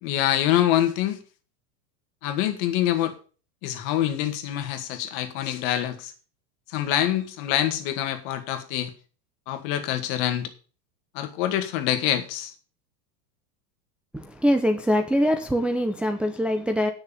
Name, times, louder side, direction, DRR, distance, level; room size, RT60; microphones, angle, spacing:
voice 1, 0.0-1.2 2.2-3.1 3.6-6.1 6.7-8.9 9.5-10.5 11.1-12.5, left 12 dB, 50° left, 2.0 m, -25 dB
voice 2, 14.1-16.9, equal, ahead, 0.6 m, -23 dB
9.8 x 6.4 x 7.0 m
supercardioid pair, 135°, 47 cm